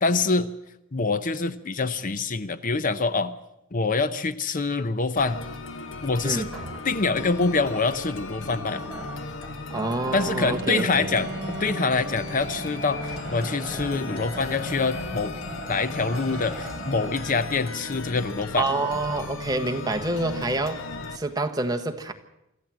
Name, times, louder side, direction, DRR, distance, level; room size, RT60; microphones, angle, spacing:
voice 1, 0.0-0.5 0.9-3.4 3.7-5.4 6.0-6.5 6.8-8.8 10.1-15.3 15.7-18.7, left 4 dB, 40° left, 13 dB, 0.7 m, -25 dB
sound 1, 5.2-21.2, left 3 dB, 70° left, 1.2 m, -37 dB
sound 2, 6.5-17.2, right 1 dB, ahead, 6.7 m, -39 dB
voice 2, 9.7-10.9 18.6-20.8 21.1-22.1, right 2 dB, 20° right, 5 dB, 1.4 m, -27 dB
Bowed string instrument, 10.2-15.2, right 2 dB, 55° right, 1.0 m, -40 dB
25.5 x 14.0 x 7.6 m, 0.88 s
head